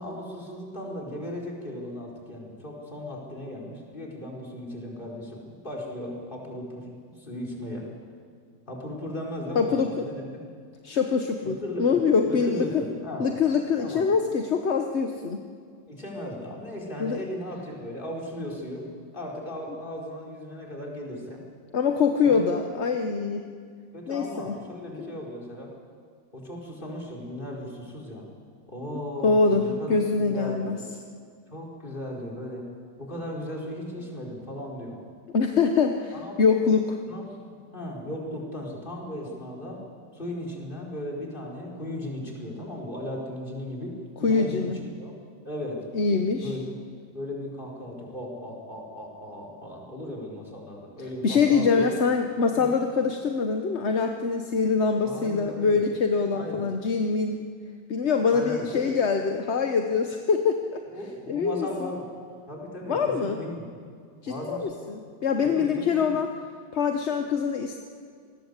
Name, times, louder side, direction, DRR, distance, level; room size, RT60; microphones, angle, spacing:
voice 1, 0.0-6.9 7.2-7.8 8.7-10.4 11.4-13.3 13.8-14.0 15.9-21.4 22.2-22.5 23.9-25.7 26.3-28.2 28.7-30.9 31.5-32.7 33.0-35.0 36.1-36.5 37.1-39.8 40.1-45.1 45.4-45.8 46.4-46.7 47.1-51.9 52.5-52.7 55.0-55.8 56.3-56.6 58.3-58.9 60.9-62.1 62.5-63.6 64.3-64.7 65.4-66.1, left 1 dB, 25° left, -1 dB, 4.8 m, -36 dB
voice 2, 9.5-10.1 10.8-12.8 13.2-15.4 17.0-17.2 21.7-23.4 24.1-24.5 25.0-25.1 29.2-29.6 29.9-30.8 35.3-36.1 36.4-37.0 44.2-44.8 45.9-46.5 51.2-57.4 57.9-60.8 61.3-61.7 62.9-63.4 64.2-66.3 66.7-67.8, left 5 dB, 45° left, 5 dB, 1.2 m, -24 dB
26.5 x 20.0 x 8.2 m, 2.1 s
omnidirectional pair, 1.9 m